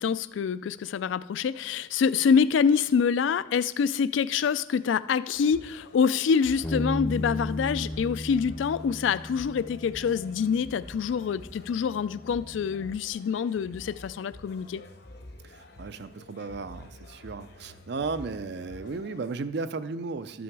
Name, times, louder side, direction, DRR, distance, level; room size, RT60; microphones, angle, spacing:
voice 1, 0.0-14.8, left 6 dB, 75° left, 16 dB, 0.3 m, -26 dB
sound 1, 5.3-19.4, left 1 dB, 60° left, 0.8 m, -49 dB
Bass guitar, 6.6-12.9, left 1 dB, 10° left, 0.6 m, -36 dB
voice 2, 15.4-20.4, right 4 dB, 60° right, 13 dB, 0.5 m, -35 dB
13.0 x 6.2 x 4.7 m, 0.97 s
head